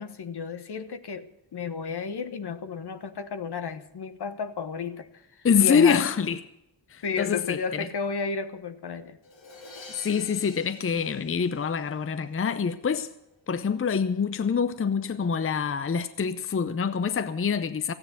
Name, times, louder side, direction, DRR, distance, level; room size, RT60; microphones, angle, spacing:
voice 1, 0.0-5.2 5.6-6.0 7.0-9.2, left 5 dB, 60° left, 1.2 m, -32 dB
voice 2, 5.4-6.4 6.9-7.9 9.9-13.1 13.5-17.9, left 6 dB, 30° left, 0.7 m, -25 dB
Crash cymbal, 9.2-12.2, left 3 dB, 80° left, 2.3 m, -47 dB
14.5 x 9.8 x 8.0 m
cardioid pair, 75°, 45 cm